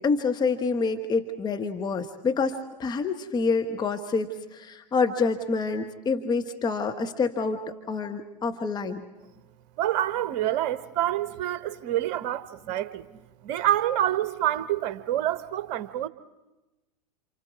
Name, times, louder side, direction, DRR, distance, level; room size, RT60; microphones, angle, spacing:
voice 1, 0.0-9.0, left 4 dB, 20° left, 1.4 m, -27 dB
voice 2, 9.8-16.1, right 12 dB, 45° right, 1.2 m, -27 dB
28.5 x 28.0 x 4.8 m
figure-of-eight pair, 95°, 21 cm